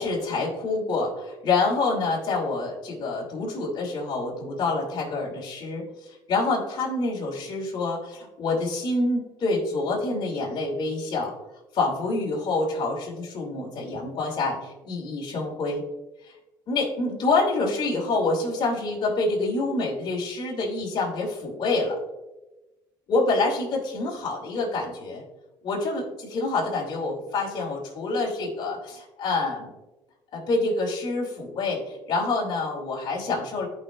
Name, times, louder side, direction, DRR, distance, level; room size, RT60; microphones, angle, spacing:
voice 1, 0.0-11.3 11.7-15.8 16.7-22.0 23.1-25.2 25.6-29.7 30.3-33.7, left 3 dB, 50° left, -3 dB, 2.7 m, -27 dB
14.0 x 5.4 x 2.5 m, 1.0 s
supercardioid pair, 95°, 10 cm